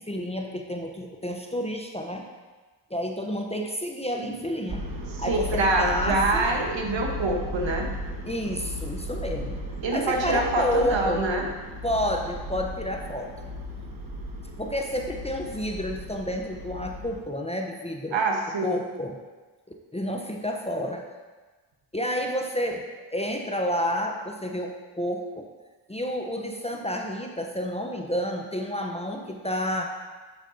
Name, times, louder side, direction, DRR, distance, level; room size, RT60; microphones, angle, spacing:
voice 1, 0.1-2.3 2.9-4.9 5.2-6.5 8.2-9.6 9.9-11.3 11.8-13.3 14.6-18.2 18.6-19.2 19.9-21.0 21.9-22.9 23.1-25.5 25.9-29.9, equal, 10° left, 2 dB, 0.8 m, -30 dB
sound 1, 4.7-17.2, equal, 40° right, 1.5 m, -35 dB
voice 2, 5.3-7.9 9.8-11.5 18.1-18.8, right 2 dB, 60° right, 2 dB, 1.3 m, -25 dB
7.7 x 7.0 x 2.8 m, 1.3 s
supercardioid pair, 40°, 50 cm